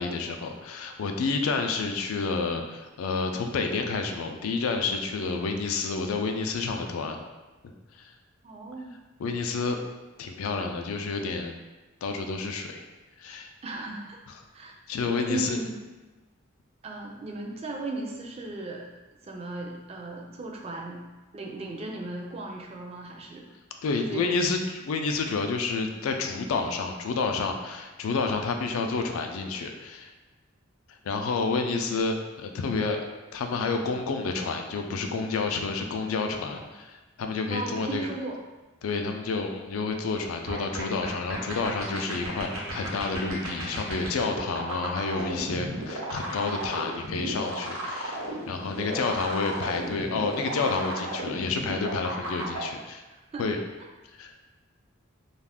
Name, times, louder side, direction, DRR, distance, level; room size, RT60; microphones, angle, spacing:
voice 1, 0.0-7.2 9.2-9.8 10.2-11.5 12.0-12.8 13.2-13.5 14.9-15.6 23.8-30.1 31.0-33.0 33.3-38.1 38.8-53.0 53.4-53.6 54.2-54.4, left 4 dB, 85° left, 4 dB, 0.4 m, -29 dB
voice 2, 8.4-8.9 13.6-14.2 14.5-14.7 15.2-15.9 16.8-18.9 19.2-21.0 21.3-23.5 24.1-24.4 36.5-36.7 37.5-38.4 53.3-53.5, right 2 dB, 30° right, 0 dB, 0.3 m, -36 dB
sound 1, 40.5-52.6, right 1 dB, 80° right, 0.8 m, -34 dB
2.4 x 2.3 x 3.4 m, 1.2 s
head